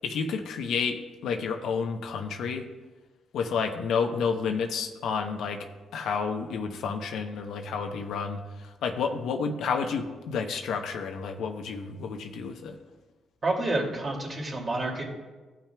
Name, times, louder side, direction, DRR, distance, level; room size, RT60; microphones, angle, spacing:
voice 1, 0.0-2.6 3.3-5.7 5.9-12.8, left 5 dB, 75° left, 4 dB, 0.8 m, -30 dB
voice 2, 13.4-15.0, right 2 dB, 40° right, -3 dB, 2.4 m, -29 dB
16.5 x 5.9 x 2.3 m, 1.2 s
cardioid pair, 90°, 0 cm